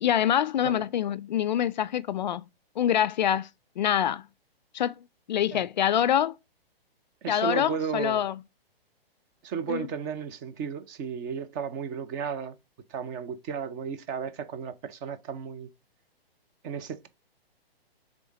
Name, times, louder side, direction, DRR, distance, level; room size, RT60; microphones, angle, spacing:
voice 1, 0.0-2.4 2.8-3.5 3.8-4.3 4.7-5.0 5.3-6.3 7.3-8.3 9.7-9.9, left 10 dB, 50° left, 0.4 m, -25 dB
voice 2, 7.2-8.2 9.4-12.5 12.9-15.7 16.6-17.1, right 7 dB, 20° right, 0.5 m, -34 dB
6.7 x 3.6 x 5.0 m
hypercardioid pair, 145°, 31 cm